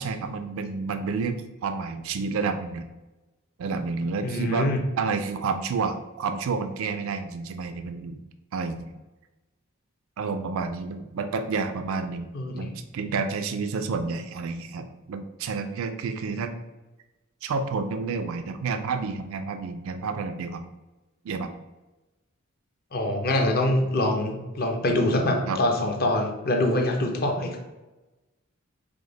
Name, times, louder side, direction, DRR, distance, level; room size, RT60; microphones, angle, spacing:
voice 1, 0.0-2.9 3.6-4.7 5.0-8.2 8.5-8.9 10.2-12.3 12.5-16.5 17.4-20.6 21.2-21.5 25.5-25.6, right 4 dB, 70° right, 8 dB, 0.3 m, -30 dB
voice 2, 4.2-4.8 12.3-12.7 16.3-16.5 22.9-27.6, left 1 dB, 45° left, 2 dB, 0.7 m, -25 dB
4.9 x 2.1 x 3.8 m, 1.1 s
head